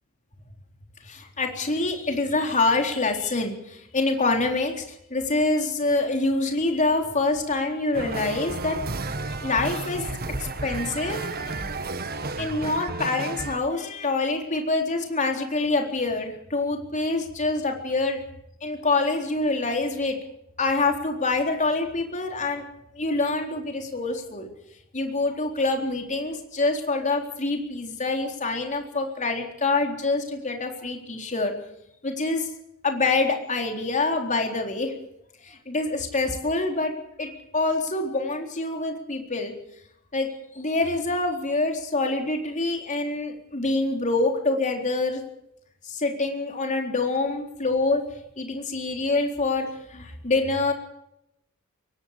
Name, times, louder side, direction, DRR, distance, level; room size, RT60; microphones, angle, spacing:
voice 1, 1.0-8.8 9.4-10.1 10.4-11.6 12.4-18.2 18.6-20.2 20.6-22.6 22.9-24.5 24.9-31.5 32.0-32.5 32.8-34.9 35.4-36.9 37.2-39.5 40.1-40.3 40.5-45.2 45.8-48.0 48.4-50.7, left 3 dB, 35° left, 3 dB, 3.9 m, -26 dB
sound 1, 7.9-13.6, right 3 dB, 45° right, 1.6 m, -32 dB
23.0 x 18.5 x 6.8 m, 0.82 s
head